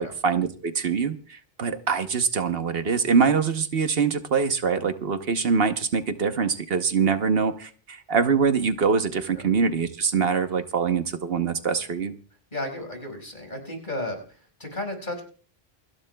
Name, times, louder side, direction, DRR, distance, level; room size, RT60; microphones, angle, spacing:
voice 1, 0.0-12.1, right 5 dB, 70° right, 8 dB, 1.1 m, -24 dB
voice 2, 12.5-15.2, left 1 dB, 50° left, 2 dB, 5.4 m, -34 dB
28.5 x 11.0 x 2.3 m, 0.41 s
omnidirectional pair, 1.1 m